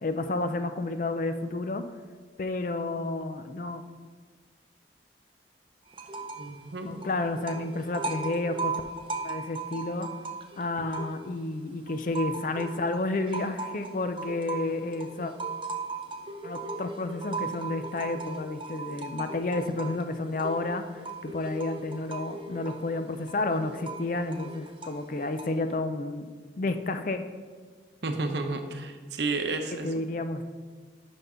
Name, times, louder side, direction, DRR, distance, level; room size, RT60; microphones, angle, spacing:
voice 1, 0.0-1.8 2.4-3.8 6.9-8.8 9.2-10.1 10.6-15.3 16.4-26.3 26.6-27.2 29.8-30.4, left 2 dB, 45° left, 8 dB, 0.4 m, -31 dB
sound 1, 5.9-6.5 6.8-11.5 11.9-25.7, right 3 dB, 30° right, 0.5 m, -38 dB
voice 2, 6.4-6.9 28.0-29.9, right 3 dB, 70° right, 6 dB, 0.7 m, -31 dB
6.0 x 5.3 x 5.6 m, 1.5 s
head